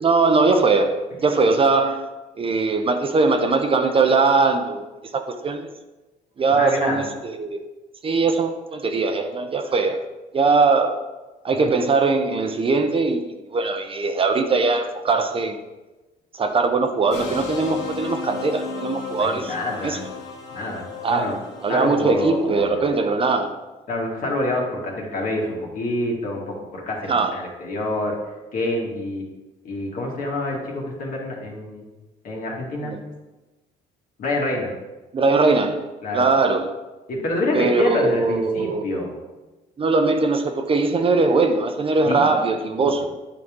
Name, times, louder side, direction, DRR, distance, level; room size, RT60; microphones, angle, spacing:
voice 1, 0.0-2.1 2.4-4.9 5.1-5.7 6.4-7.6 8.0-10.0 10.3-11.0 11.4-13.2 13.5-15.6 16.3-19.5 19.8-20.0 21.0-21.3 21.6-23.5 27.1-27.4 32.8-33.0 35.1-35.9 36.1-36.7 37.5-38.9 39.8-43.1, right 3 dB, 30° right, 0.7 m, -20 dB
voice 2, 6.5-7.1 11.5-11.7 19.1-20.0 20.5-21.4 21.7-22.9 23.9-28.2 28.5-29.2 29.6-31.9 32.2-32.9 34.2-34.7 36.0-36.2 37.1-39.1 42.0-42.9, left 1 dB, 55° left, 2.2 m, -27 dB
sound 1, 17.1-22.4, left 5 dB, 80° left, 1.2 m, -34 dB
9.5 x 5.3 x 3.7 m
cardioid pair, 110°, 17 cm